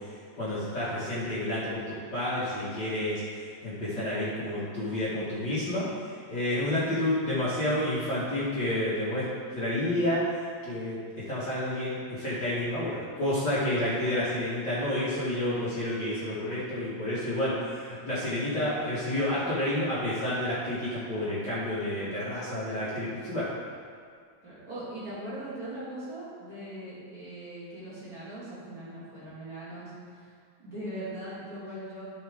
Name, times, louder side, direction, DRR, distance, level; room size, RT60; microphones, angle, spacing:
voice 1, 0.4-9.2 9.5-10.2 10.6-23.5, left 1 dB, 40° left, -10 dB, 2.0 m, -30 dB
voice 2, 3.7-5.2 24.4-30.3 30.6-32.0, right 1 dB, 35° right, -11 dB, 2.1 m, -40 dB
13.0 x 4.9 x 3.6 m, 2.1 s
omnidirectional pair, 3.3 m